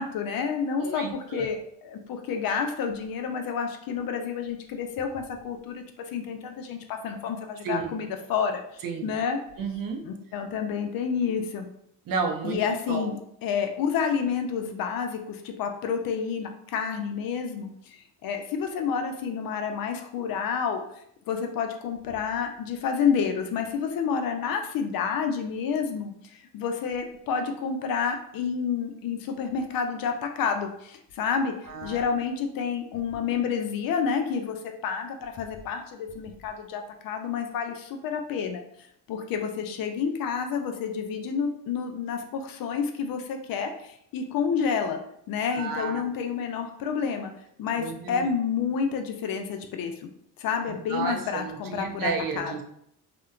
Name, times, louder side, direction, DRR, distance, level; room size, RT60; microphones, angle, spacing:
voice 1, 0.0-9.4 10.0-11.7 12.4-20.8 21.3-38.6 39.1-47.3 47.6-50.1 50.4-52.5, left 6 dB, 50° left, 5 dB, 0.4 m, -29 dB
voice 2, 0.8-1.5 7.6-7.9 8.8-9.1 9.6-10.1 12.1-12.6 12.9-13.1 31.6-32.1 45.5-46.0 47.8-48.3 50.7-52.6, right 4 dB, 50° right, 3 dB, 0.5 m, -32 dB
2.7 x 2.1 x 2.3 m, 0.73 s
supercardioid pair, 75°, 45 cm